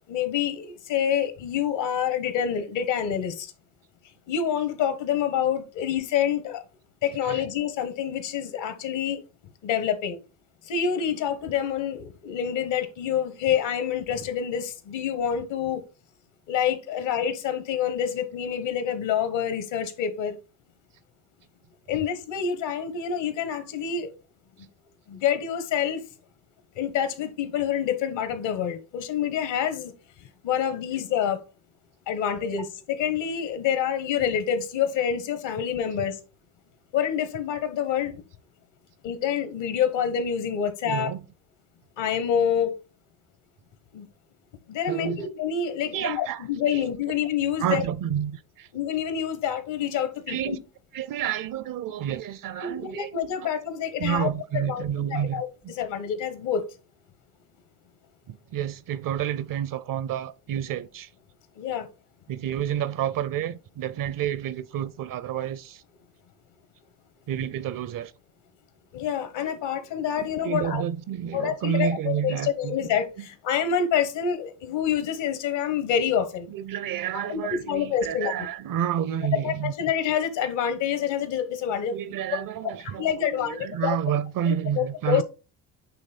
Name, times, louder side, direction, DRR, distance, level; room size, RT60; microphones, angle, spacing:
voice 1, 0.1-3.5 4.3-6.6 7.0-9.2 9.6-10.2 10.6-15.8 16.5-20.4 21.9-24.1 24.6-24.7 25.1-26.0 26.7-29.9 30.4-31.4 32.1-36.2 36.9-38.2 39.0-41.1 42.0-42.7 43.9-44.1 44.7-47.8 48.7-50.6 52.6-54.8 55.1-56.6 61.6-61.9 68.9-70.8 71.3-76.5 77.3-78.3 79.3-82.0 82.3-82.4 82.9-84.0 84.4-85.2, left 8 dB, 70° left, 1.3 m, -27 dB
voice 2, 40.8-41.2 44.9-45.2 45.9-46.9 47.6-48.7 50.3-50.6 50.9-53.1 54.0-55.4 58.3-61.1 62.3-65.8 67.3-68.1 70.2-72.9 73.2-73.3 76.5-79.7 81.9-85.2, right 9 dB, 45° right, 0.6 m, -30 dB
8.5 x 3.2 x 4.2 m
hypercardioid pair, 60°, 46 cm